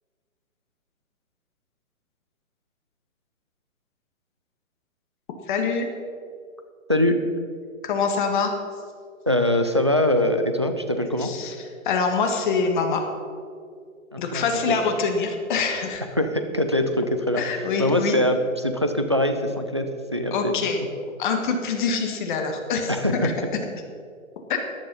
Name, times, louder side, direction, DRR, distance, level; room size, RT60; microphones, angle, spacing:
voice 1, 5.5-5.9 7.8-8.5 11.2-11.5 11.8-13.0 14.2-16.0 17.4-18.1 20.3-20.8 21.2-23.3 24.5-24.6, left 5 dB, 35° left, 4 dB, 1.8 m, -25 dB
voice 2, 9.3-11.3 14.1-14.8 16.2-17.4 17.8-20.6 22.9-23.3, left 1 dB, 25° right, 7 dB, 0.3 m, -23 dB
14.0 x 10.5 x 5.5 m, 2.2 s
hypercardioid pair, 145°, 42 cm